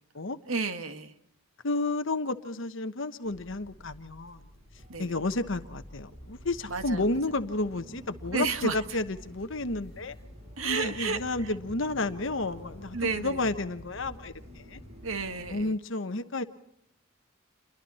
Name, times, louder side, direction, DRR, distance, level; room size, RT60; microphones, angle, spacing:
voice 1, 0.5-1.1 4.9-5.1 6.7-7.2 8.3-8.8 10.6-11.5 12.9-13.5 15.0-15.8, right 4 dB, 80° right, 1.9 m, -32 dB
voice 2, 1.6-4.4 5.0-10.1 10.6-14.8 15.5-16.4, left 2 dB, 65° left, 1.2 m, -31 dB
sound 1, 3.2-15.6, equal, 30° right, 7.8 m, -48 dB
29.0 x 23.0 x 4.3 m
head